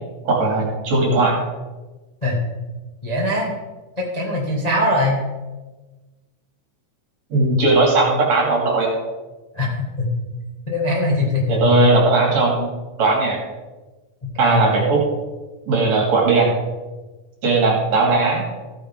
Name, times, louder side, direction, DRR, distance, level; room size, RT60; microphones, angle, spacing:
voice 1, 0.2-1.4 7.3-8.9 11.5-12.7 13.0-13.4 14.4-15.0 15.7-16.5 17.4-18.4, right 3 dB, 55° right, -2 dB, 3.7 m, -17 dB
voice 2, 3.0-3.5 4.0-5.2 9.5-9.7 10.0-10.1 10.7-11.9 14.3-14.6, left 1 dB, 20° left, -3 dB, 1.3 m, -21 dB
15.0 x 9.2 x 3.7 m, 1.2 s
omnidirectional pair, 3.7 m